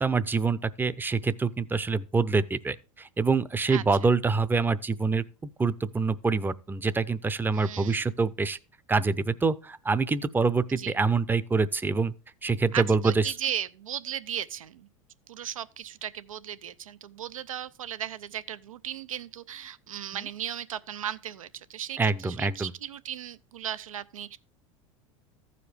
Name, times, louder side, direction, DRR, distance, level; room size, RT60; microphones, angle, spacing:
voice 1, 0.0-8.6 8.9-12.1 12.4-13.3 20.1-20.3 22.0-22.7, right 4 dB, 10° right, 0.5 m, -26 dB
voice 2, 7.5-8.0 10.8-10.9 12.7-14.9 15.3-24.4, right 10 dB, 85° right, 0.5 m, -36 dB
15.0 x 5.0 x 3.3 m
hypercardioid pair, 85°, 17 cm